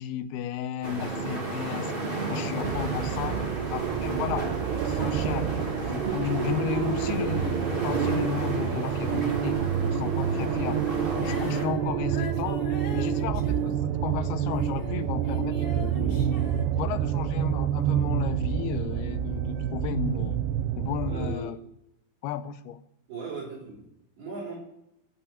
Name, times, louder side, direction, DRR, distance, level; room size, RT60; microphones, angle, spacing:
voice 1, 0.0-2.0 2.3-4.5 4.8-5.5 5.8-10.9 11.2-12.7 12.9-16.4 16.8-20.4 20.8-21.6 22.2-22.8, left 9 dB, 85° left, 11 dB, 2.7 m, -34 dB
sound 1, 0.8-11.6, right 2 dB, 25° right, 1.3 m, -32 dB
sound 2, 2.6-21.4, right 9 dB, 90° right, 2.8 m, -28 dB
Female singing, 11.1-17.5 18.1-18.2, left 5 dB, 50° left, 1.8 m, -41 dB
voice 2, 21.1-21.5 23.1-23.9 24.2-24.6, right 3 dB, 70° right, -2 dB, 5.8 m, -37 dB
13.5 x 6.1 x 9.7 m, 0.83 s
omnidirectional pair, 4.6 m